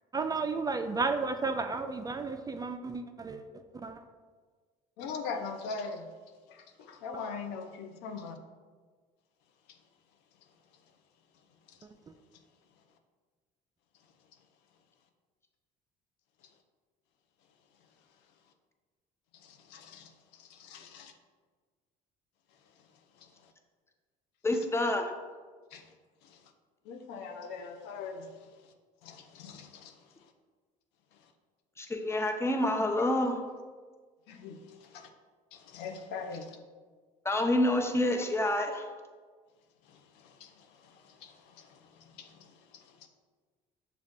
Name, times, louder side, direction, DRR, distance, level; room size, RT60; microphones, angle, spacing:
voice 1, 0.1-3.5 3.8-4.0 12.1-12.2, right 4 dB, 20° right, 7 dB, 0.3 m, -33 dB
voice 2, 5.0-6.1 6.5-8.4 9.7-9.8 11.7-11.8 16.4-16.5 19.3-21.1 22.7-22.9 23.1-23.5 25.7-25.9 26.2-26.5 26.8-28.7 29.0-30.3 31.1-31.3 34.3-35.1 35.5-36.6 39.8-43.1, left 5 dB, 75° left, 6 dB, 0.5 m, -43 dB
voice 3, 24.4-25.1 31.8-33.4 37.2-38.9, left 1 dB, 15° left, 4 dB, 0.6 m, -28 dB
6.3 x 2.4 x 3.6 m, 1.5 s
supercardioid pair, 75°, 17 cm